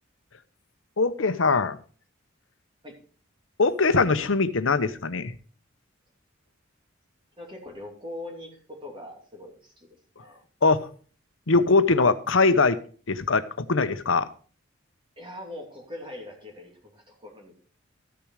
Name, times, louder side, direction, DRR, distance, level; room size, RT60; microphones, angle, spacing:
voice 1, 1.0-1.8 3.6-5.3 10.6-10.9 11.5-12.8 13.1-14.3, left 3 dB, 70° left, 12 dB, 0.9 m, -22 dB
voice 2, 7.4-10.4 15.2-17.5, left 1 dB, 25° right, 0 dB, 2.7 m, -42 dB
13.5 x 6.9 x 4.8 m, 0.41 s
head